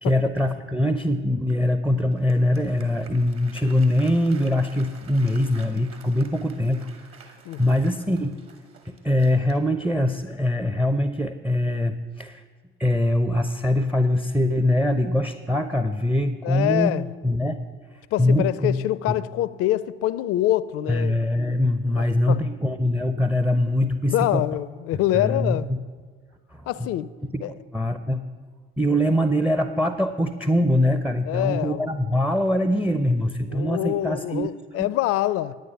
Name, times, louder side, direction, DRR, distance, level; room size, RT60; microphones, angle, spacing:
voice 1, 0.0-8.3 8.9-12.4 12.8-16.9 17.2-17.6 18.2-18.8 19.1-19.2 20.9-24.4 25.1-25.8 26.5-26.9 27.3-28.2 28.8-34.9, left 1 dB, 5° right, 0.5 m, -23 dB
Applause, 2.0-10.1, right 5 dB, 45° right, 1.6 m, -50 dB
voice 2, 7.4-7.8 16.4-17.1 18.1-21.2 21.9-22.4 24.1-25.7 26.7-27.1 27.4-27.5 31.3-31.9 33.5-35.5, left 14 dB, 50° left, 0.5 m, -25 dB
9.5 x 9.3 x 5.8 m
figure-of-eight pair, 50°, 31 cm